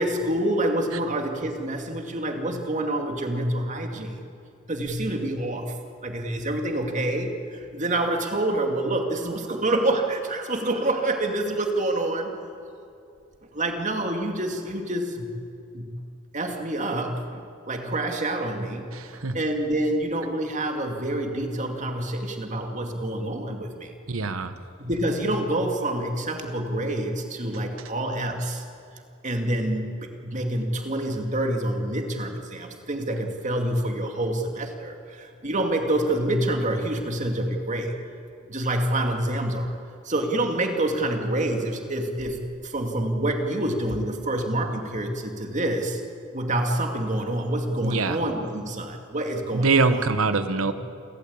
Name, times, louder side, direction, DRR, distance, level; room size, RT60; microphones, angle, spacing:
voice 1, 0.0-4.2 4.7-5.8 6.0-12.4 13.5-15.3 15.7-16.0 16.3-23.9 24.8-28.6 29.2-38.0 38.5-39.7 40.0-46.0 46.3-50.0 50.7-50.8, right 1 dB, 35° right, 3 dB, 2.4 m, -27 dB
voice 2, 18.9-19.4 24.1-24.5 47.8-48.2 49.5-50.7, right 3 dB, 85° right, 10 dB, 1.2 m, -23 dB
28.5 x 13.5 x 8.7 m, 2.5 s
head